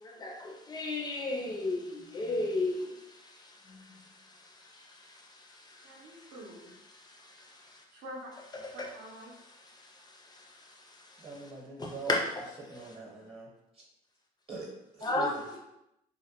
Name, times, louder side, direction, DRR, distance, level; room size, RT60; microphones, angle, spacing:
voice 1, 0.0-6.3 7.2-7.8 8.6-8.9 9.8-11.3 11.8-12.3 15.0-15.3, left 2 dB, 25° left, 1 dB, 0.3 m, -36 dB
voice 2, 5.8-6.8 7.6-8.3 8.6-9.3 15.0-15.6, right 2 dB, 80° right, -5 dB, 0.6 m, -45 dB
voice 3, 11.2-12.2 12.7-13.5 14.5-15.3, right 3 dB, 35° right, -2 dB, 0.8 m, -42 dB
2.1 x 2.1 x 2.8 m, 0.88 s
cardioid pair, 110°, 17 cm